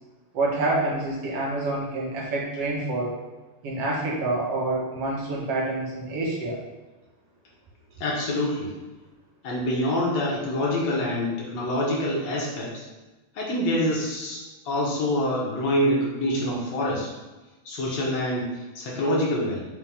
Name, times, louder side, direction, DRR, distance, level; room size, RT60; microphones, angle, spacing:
voice 1, 0.3-3.2 3.6-6.6, right 2 dB, 55° right, -4 dB, 2.4 m, -27 dB
voice 2, 8.0-8.7 9.4-12.9 13.4-17.1 17.7-19.7, left 1 dB, 60° left, -4 dB, 2.5 m, -26 dB
6.0 x 4.5 x 5.1 m, 1.2 s
omnidirectional pair, 3.6 m